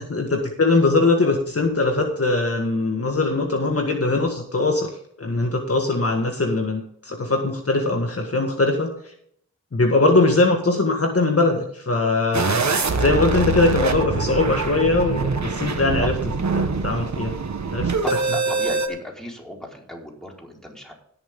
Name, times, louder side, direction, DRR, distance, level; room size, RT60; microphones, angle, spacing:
voice 1, 0.0-4.9 5.2-8.9 9.7-12.7 13.0-16.2 16.5-17.3 17.7-18.0, left 2 dB, 50° left, 3 dB, 1.8 m, -21 dB
sound 1, 12.3-18.9, right 4 dB, 60° right, 1.6 m, -24 dB
voice 2, 18.0-20.9, equal, ahead, -2 dB, 4.6 m, -35 dB
17.0 x 7.1 x 3.8 m, 0.66 s
wide cardioid pair, 65°, 31 cm